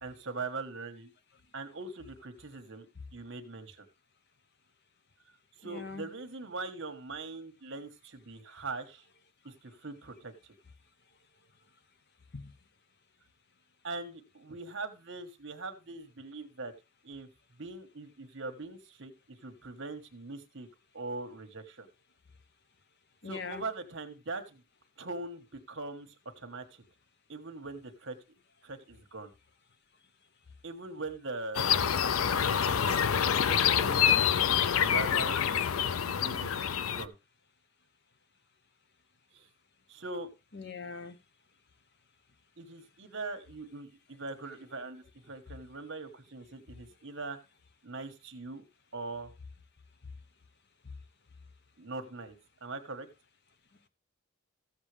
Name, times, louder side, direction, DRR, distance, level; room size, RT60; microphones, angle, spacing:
voice 1, 0.0-1.1 1.5-2.9 3.1-3.9 5.6-9.0 9.4-10.3 13.8-16.7 17.0-17.3 17.6-20.7 20.9-21.9 23.2-24.6 25.0-26.1 26.4-26.8 27.3-28.2 28.6-29.3 30.6-31.7 32.0-33.1 33.4-34.4 34.8-35.4 36.0-37.1 39.3-39.5 39.9-40.3 42.6-47.4 47.8-48.6 48.9-49.3 51.8-52.3 52.6-53.1, right 3 dB, 60° right, 1.4 m, -41 dB
voice 2, 5.6-6.0 12.3-12.4 23.2-23.6 40.5-41.1, left 4 dB, 50° left, 0.9 m, -41 dB
sound 1, 31.5-37.0, left 8 dB, 85° left, 0.5 m, -27 dB
14.5 x 7.4 x 3.3 m
head